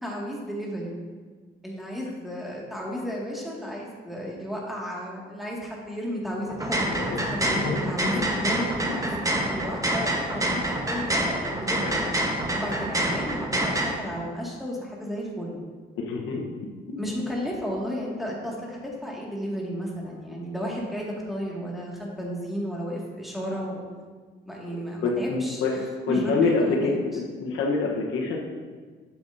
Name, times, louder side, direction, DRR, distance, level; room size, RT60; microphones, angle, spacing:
voice 1, 0.0-0.9 1.6-15.6 17.0-23.8 24.5-27.0, equal, ahead, -4 dB, 2.0 m, -33 dB
sound 1, 6.5-13.9, right 1 dB, 15° right, 1.1 m, -27 dB
voice 2, 6.7-7.8 11.3-11.4 11.8-11.9 16.0-16.5 25.0-25.7 26.1-28.4, left 3 dB, 90° left, 0 dB, 1.1 m, -26 dB
8.9 x 6.9 x 2.7 m, 1.5 s
cardioid pair, 90°, 20 cm